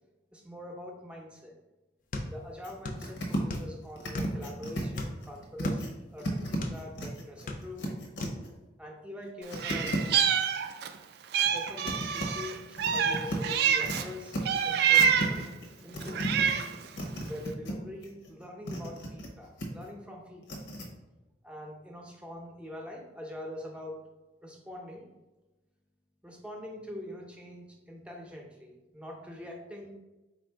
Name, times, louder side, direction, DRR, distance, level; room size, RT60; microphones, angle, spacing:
voice 1, 0.3-1.5 2.3-8.1 8.8-10.2 11.5-14.4 14.6-16.8 17.2-20.6 21.4-24.1 24.4-25.1 26.2-30.0, left 1 dB, 5° right, 0 dB, 0.6 m, -44 dB
sound 1, 2.1-3.1 3.3-4.5 4.9-6.8 7.3-7.9 8.2-8.4, left 2 dB, 50° left, 0.5 m, -38 dB
sound 2, 2.6-2.7 3.0-3.6 4.0-5.9 6.2-8.5 9.5-10.2 11.4-12.3 12.8-14.0 14.3-14.7 15.0-17.7 18.0-19.3 19.6-19.9 20.4-20.9, equal, 90° left, 0.9 m, -35 dB
Meow, 9.6-11.0 11.3-14.1 14.5-15.5 16.0-16.8, right 8 dB, 60° right, 0.3 m, -27 dB
4.2 x 2.5 x 4.4 m, 1.1 s
head